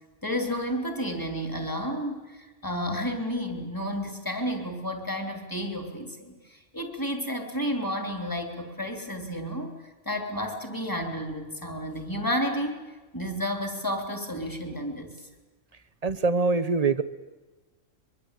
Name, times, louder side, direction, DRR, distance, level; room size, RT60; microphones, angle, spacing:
voice 1, 0.2-9.7 10.1-12.8 13.1-15.1, equal, 15° left, 4 dB, 3.5 m, -31 dB
voice 2, 16.0-17.0, right 4 dB, 30° right, 12 dB, 1.1 m, -23 dB
24.0 x 23.5 x 8.5 m, 1.2 s
omnidirectional pair, 1.4 m